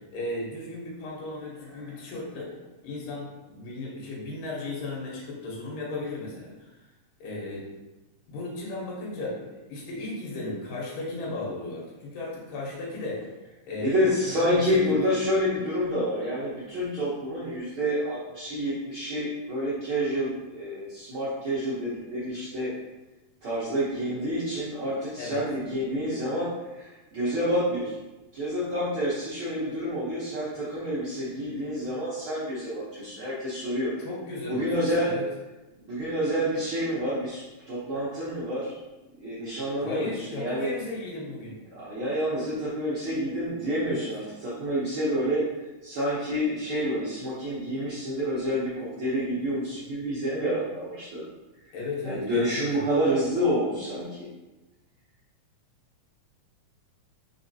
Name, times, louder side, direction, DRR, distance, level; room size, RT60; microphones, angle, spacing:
voice 1, 0.0-2.6 2.8-6.8 7.2-7.7 8.3-13.3 13.6-15.2 25.2-25.4 34.0-35.2 39.8-41.6 43.8-44.1 51.7-52.8, left 2 dB, 90° left, -3 dB, 2.7 m, -35 dB
voice 2, 13.8-22.7 23.4-27.9 28.3-33.9 34.5-35.1 35.8-38.8 39.2-40.7 41.7-45.4 45.8-51.2 52.0-54.3, equal, 85° right, -9 dB, 1.1 m, -28 dB
4.5 x 4.1 x 2.7 m, 1.1 s
omnidirectional pair, 3.7 m